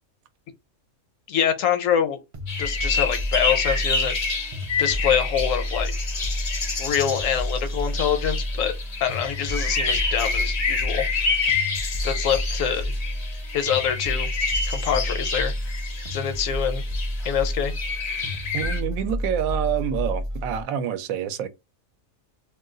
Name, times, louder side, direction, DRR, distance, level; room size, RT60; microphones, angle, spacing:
voice 1, 1.3-2.2 2.6-4.2 4.8-6.0 6.8-8.7 9.0-11.1 12.0-12.9 13.5-14.3 14.7-15.8 16.1-16.8 17.2-17.7, left 8 dB, 70° left, 1.0 m, -25 dB
sound 1, 2.3-20.6, left 1 dB, 45° right, 0.4 m, -30 dB
sound 2, 2.5-18.8, left 4 dB, 45° left, 0.5 m, -28 dB
voice 2, 18.5-21.5, right 9 dB, 80° right, 1.0 m, -27 dB
2.6 x 2.3 x 3.7 m
omnidirectional pair, 1.4 m